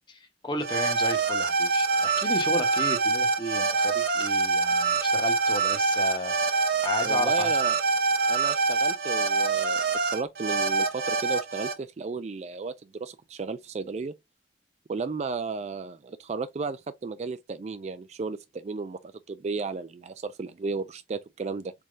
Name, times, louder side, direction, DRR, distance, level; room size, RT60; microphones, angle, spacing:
voice 1, 0.4-6.4 6.8-7.5, left 1 dB, 25° left, 0.9 m, -33 dB
sound 1, 0.6-11.7, right 4 dB, 60° right, 0.8 m, -25 dB
voice 2, 7.0-7.8 8.3-14.2 14.9-21.7, right 4 dB, 40° right, 0.3 m, -34 dB
4.2 x 3.4 x 2.4 m
head